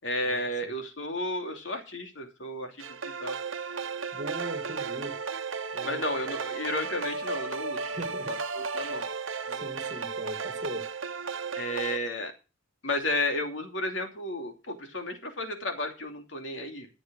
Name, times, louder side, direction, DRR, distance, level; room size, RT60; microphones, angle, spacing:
voice 1, 0.0-2.8 3.2-3.4 5.8-7.9 8.3-9.0 9.5-9.6 11.6-12.3 12.8-16.9, left 1 dB, 70° left, 2.8 m, -33 dB
sound 1, 2.8-12.0, right 5 dB, 80° right, 1.0 m, -34 dB
voice 2, 4.1-5.1 5.7-6.4 7.8-8.4 8.6-8.8 9.5-10.9, right 1 dB, 40° right, 2.4 m, -39 dB
14.5 x 7.1 x 6.3 m
head